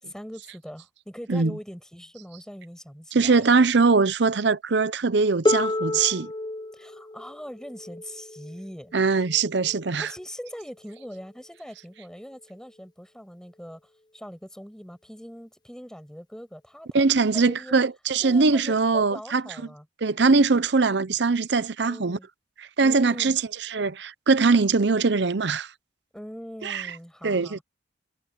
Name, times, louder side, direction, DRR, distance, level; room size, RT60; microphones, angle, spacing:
voice 1, 0.0-3.6 6.7-8.9 10.0-13.8 14.1-17.0 17.3-17.8 18.2-19.9 21.8-22.3 22.8-23.4 26.1-27.6, equal, 5° left, 6.9 m, -41 dB
voice 2, 3.1-6.3 8.9-10.1 16.9-19.4 20.0-22.2 22.6-25.7 26.6-26.9 27.2-27.6, right 4 dB, 65° right, 0.7 m, -22 dB
Harp, 5.5-11.2 12.3-12.4, left 2 dB, 20° left, 0.4 m, -31 dB
head